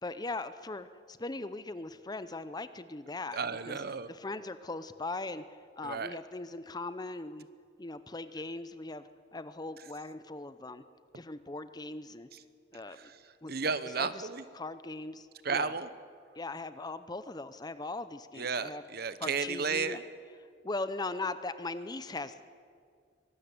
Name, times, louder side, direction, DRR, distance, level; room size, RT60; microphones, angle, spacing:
voice 1, 0.0-3.4 3.7-3.8 4.1-5.4 5.8-7.5 7.8-10.8 11.1-12.3 12.7-13.1 13.4-13.6 14.0-14.3 14.5-15.7 16.3-18.8 19.2-20.0 20.6-22.4, left 2 dB, 20° left, 13 dB, 0.7 m, -39 dB
voice 2, 3.3-4.1 5.8-6.2 12.9-13.2 13.5-14.4 15.4-15.9 18.4-20.0, right 5 dB, 55° right, 13 dB, 0.9 m, -33 dB
23.5 x 13.0 x 9.6 m, 2.1 s
head